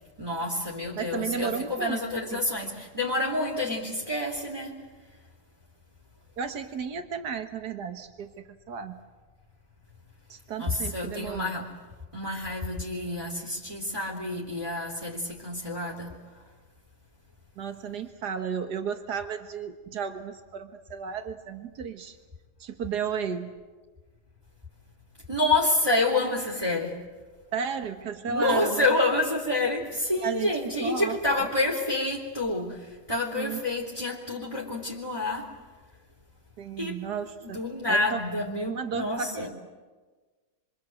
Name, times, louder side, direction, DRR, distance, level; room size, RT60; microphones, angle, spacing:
voice 1, 0.2-4.8 10.6-11.7 12.1-16.2 25.3-27.0 28.2-35.5 36.8-37.0 37.5-39.5, left 2 dB, 20° right, -1 dB, 3.2 m, -28 dB
voice 2, 1.0-2.0 2.3-2.4 6.4-9.0 10.3-11.5 17.6-22.2 22.6-23.5 27.5-28.9 30.2-31.5 33.3-33.6 36.6-37.6 37.9-38.2 38.7-39.5, right 6 dB, 85° right, 7 dB, 1.9 m, -33 dB
26.5 x 26.0 x 7.7 m, 1.4 s
omnidirectional pair, 1.7 m